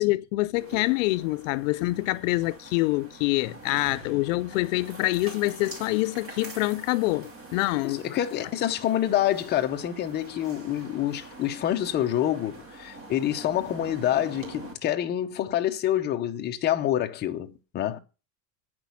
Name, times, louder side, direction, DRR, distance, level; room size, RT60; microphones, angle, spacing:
voice 1, 0.0-8.2, left 20 dB, 55° left, 0.5 m, -26 dB
sound 1, 0.6-14.7, right 3 dB, 25° right, 2.7 m, -45 dB
voice 2, 7.9-18.0, left 11 dB, 20° left, 0.7 m, -27 dB
9.2 x 6.1 x 8.4 m
supercardioid pair, 170°, 48 cm